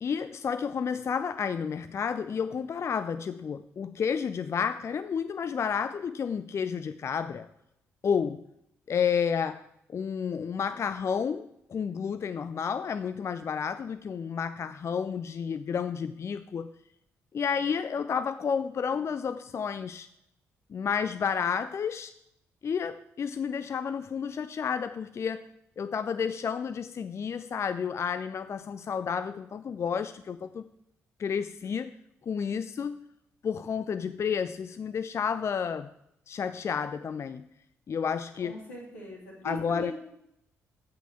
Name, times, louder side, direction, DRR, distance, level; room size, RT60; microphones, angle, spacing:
voice 1, 0.0-7.5 8.0-8.4 8.9-9.6 9.9-16.7 17.3-20.1 20.7-22.1 22.6-25.4 25.8-30.6 31.2-31.9 32.2-33.1 33.4-35.9 36.3-37.4 37.9-38.6 39.4-39.9, left 6 dB, 35° left, 13 dB, 0.4 m, -31 dB
voice 2, 38.4-39.9, left 2 dB, 80° left, -3 dB, 2.8 m, -40 dB
8.7 x 8.4 x 5.9 m, 0.79 s
figure-of-eight pair, 40°, 8 cm